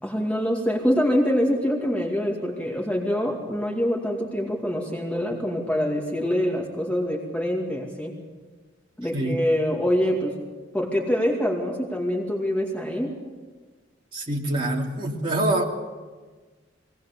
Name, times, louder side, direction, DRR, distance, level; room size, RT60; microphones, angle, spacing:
voice 1, 0.0-8.2 9.0-10.4 10.7-13.1, equal, 5° left, -1 dB, 2.4 m, -25 dB
voice 2, 14.1-15.6, right 1 dB, 25° right, -1 dB, 2.6 m, -25 dB
22.0 x 18.5 x 6.9 m, 1.4 s
head